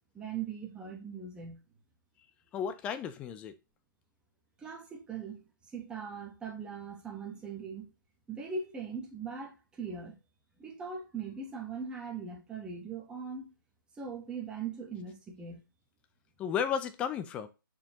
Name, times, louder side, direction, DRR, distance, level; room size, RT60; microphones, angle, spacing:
voice 1, 0.1-1.6 4.6-5.4 5.7-7.9 8.3-10.2 10.6-13.5 14.0-15.6, right 5 dB, 5° right, 1.3 m, -40 dB
voice 2, 2.5-3.6 16.4-17.5, left 8 dB, 10° left, 0.4 m, -33 dB
7.0 x 4.5 x 2.9 m
hypercardioid pair, 150°, 12 cm